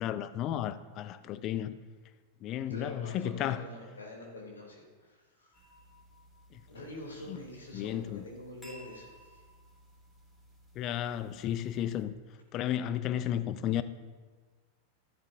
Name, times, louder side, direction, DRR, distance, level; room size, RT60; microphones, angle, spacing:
voice 1, 0.0-1.8 2.4-3.6 6.5-6.6 7.3-7.4 7.7-8.2 10.8-12.1 12.5-13.8, left 11 dB, 35° left, 0.6 m, -33 dB
voice 2, 2.7-5.7 6.7-9.4, left 1 dB, 75° left, 3.1 m, -46 dB
sound 1, 5.5-12.0, equal, 10° left, 3.1 m, -57 dB
14.0 x 12.0 x 2.7 m
figure-of-eight pair, 90°, 0 cm